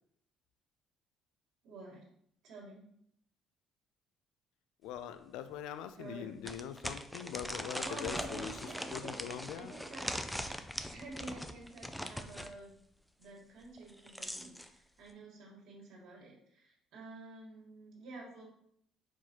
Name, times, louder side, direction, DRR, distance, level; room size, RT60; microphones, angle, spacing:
voice 1, 1.6-2.1 2.4-3.0 6.0-6.4 7.8-9.2 9.5-10.5 10.9-12.7 13.2-18.4, right 2 dB, 75° right, -3 dB, 1.6 m, -49 dB
voice 2, 4.8-8.5 8.9-9.7, left 9 dB, 90° left, 11 dB, 0.3 m, -42 dB
sound 1, 5.0-5.1 5.5-5.6 6.4-12.5 13.8-14.7, equal, ahead, 0.4 m, -41 dB
4.6 x 3.9 x 2.9 m, 0.68 s
cardioid pair, 105°, 0 cm